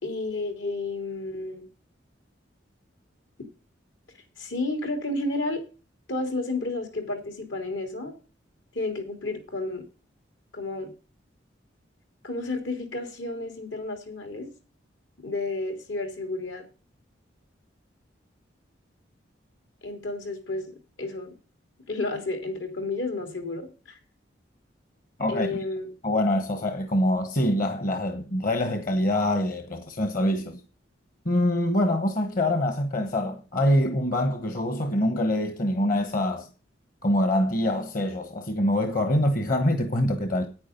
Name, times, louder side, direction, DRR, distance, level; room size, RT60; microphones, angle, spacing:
voice 1, 0.0-1.6 4.4-5.6 6.1-8.1 8.7-9.8 10.5-10.9 12.2-14.5 15.2-16.6 19.8-20.7 21.0-21.3 21.9-24.0 25.3-25.9, left 2 dB, 80° left, 3.5 m, -31 dB
voice 2, 25.2-25.6 26.0-30.6 31.2-36.5 37.0-40.5, left 1 dB, 45° left, 1.2 m, -25 dB
9.6 x 9.5 x 5.3 m
head